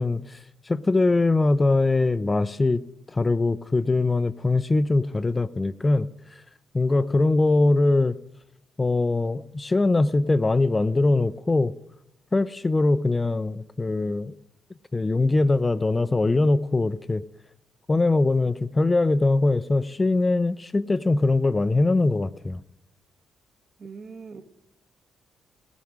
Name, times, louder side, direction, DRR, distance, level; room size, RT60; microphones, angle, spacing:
voice 1, 0.0-2.8 3.1-6.4 6.7-8.2 8.8-11.7 12.3-14.3 14.9-17.2 17.9-22.6, left 2 dB, 20° left, 0.5 m, -22 dB
voice 2, 23.8-24.4, right 5 dB, 45° right, 1.3 m, -41 dB
16.5 x 6.2 x 9.9 m
cardioid pair, 90°, 0 cm